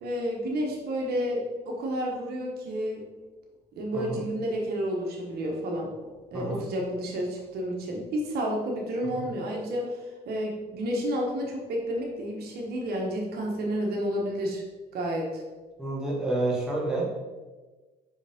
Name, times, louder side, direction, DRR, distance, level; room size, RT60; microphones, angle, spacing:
voice 1, 0.0-3.0 3.8-5.9 6.3-10.0 10.3-14.6 14.9-15.4, equal, 70° right, -1 dB, 1.3 m, -30 dB
voice 2, 15.8-17.1, right 2 dB, 5° right, -5 dB, 1.7 m, -29 dB
5.5 x 5.2 x 3.6 m, 1.3 s
cardioid pair, 110°, 17 cm